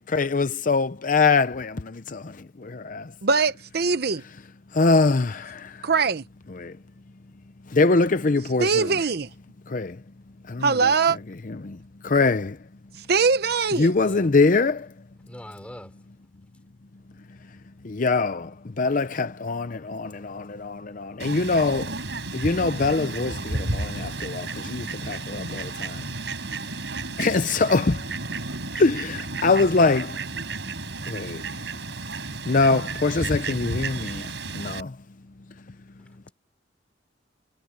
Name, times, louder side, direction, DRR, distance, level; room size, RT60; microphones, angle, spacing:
voice 1, 0.1-3.1 4.7-5.9 6.5-6.8 7.7-9.0 9.7-10.0 10.5-10.9 11.4-12.6 13.8-14.9 17.8-22.0 22.3-26.1 27.2-28.1 28.7-30.2 31.1-31.6 32.4-35.0, left 3 dB, 45° left, 0.6 m, -23 dB
voice 2, 3.2-4.2 5.8-6.2 8.6-9.3 10.6-11.2 13.1-13.9, right 5 dB, 60° right, 0.8 m, -21 dB
voice 3, 15.3-15.9 36.0-36.3, equal, 5° left, 5.5 m, -43 dB
Fowl, 21.2-34.8, right 3 dB, 80° right, 4.3 m, -33 dB
head